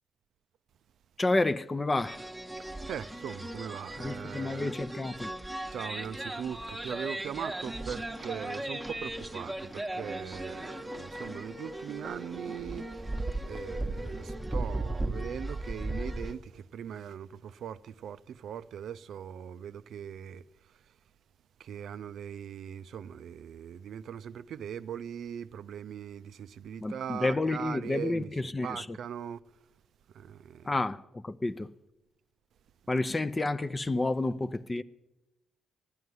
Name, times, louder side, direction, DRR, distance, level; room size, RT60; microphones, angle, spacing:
voice 1, 1.2-2.2 4.0-5.3 26.8-29.0 30.7-31.7 32.9-34.8, left 2 dB, 25° left, 0.6 m, -30 dB
sound 1, 2.0-16.3, right 1 dB, 5° right, 1.0 m, -37 dB
voice 2, 2.6-4.7 5.7-20.8 21.6-28.3 28.6-29.4 30.1-30.7, right 8 dB, 70° right, 0.4 m, -40 dB
12.0 x 9.4 x 9.4 m
cardioid pair, 85°, 0 cm